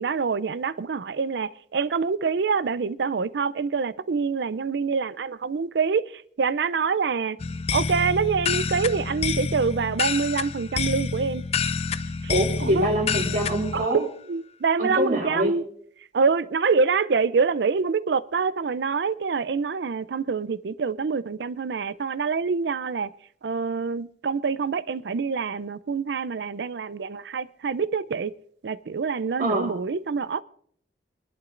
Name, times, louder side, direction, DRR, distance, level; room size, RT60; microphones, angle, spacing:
voice 1, 0.0-7.4 7.7-11.4 12.6-12.9 13.7-14.0 14.3-15.6 16.1-23.1 23.4-28.3 28.6-30.4, right 5 dB, 70° right, 0.5 m, -26 dB
sound 1, 7.4-13.9, left 5 dB, 35° left, 0.4 m, -28 dB
voice 2, 12.3-14.0 14.8-15.6 29.4-29.7, right 1 dB, 50° right, 2.4 m, -25 dB
26.5 x 11.5 x 2.5 m
head